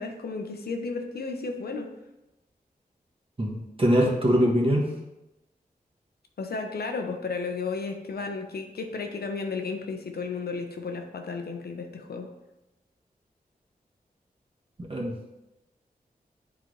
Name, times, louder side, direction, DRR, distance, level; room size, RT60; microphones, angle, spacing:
voice 1, 0.0-1.9 6.4-12.3, left 4 dB, 85° left, 4 dB, 0.9 m, -33 dB
voice 2, 3.4-4.9 14.9-15.1, equal, 35° right, -2 dB, 1.4 m, -22 dB
9.5 x 4.0 x 3.3 m, 0.95 s
wide cardioid pair, 105°, 16 cm